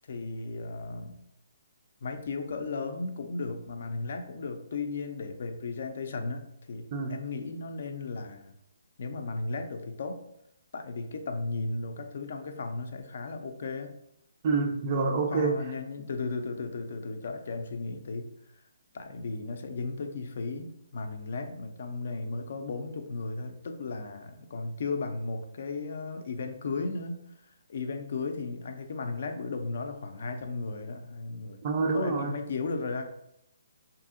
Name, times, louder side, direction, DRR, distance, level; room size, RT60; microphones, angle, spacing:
voice 1, 0.1-1.2 2.0-8.5 9.0-10.2 10.7-13.9 15.3-18.3 18.9-31.6 31.9-33.1, left 3 dB, 60° left, 6 dB, 0.4 m, -35 dB
voice 2, 14.4-15.5 31.6-32.3, right 4 dB, 40° right, 3 dB, 0.3 m, -27 dB
2.6 x 2.6 x 2.5 m, 0.78 s
hypercardioid pair, 150°, 0 cm